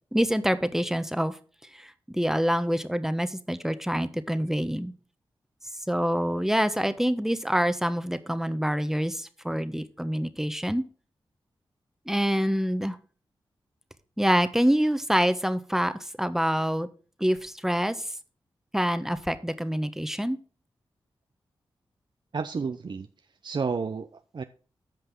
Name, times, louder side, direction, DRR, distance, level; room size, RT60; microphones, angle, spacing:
voice 1, 0.1-1.4 1.7-4.9 5.9-10.8 12.1-13.0 14.2-16.9 17.2-18.1 18.7-20.4, equal, 5° right, 11 dB, 1.2 m, -26 dB
voice 2, 22.3-23.1 23.4-24.4, right 5 dB, 55° right, 9 dB, 0.7 m, -31 dB
14.5 x 5.3 x 3.8 m, 0.39 s
cardioid pair, 50°, 9 cm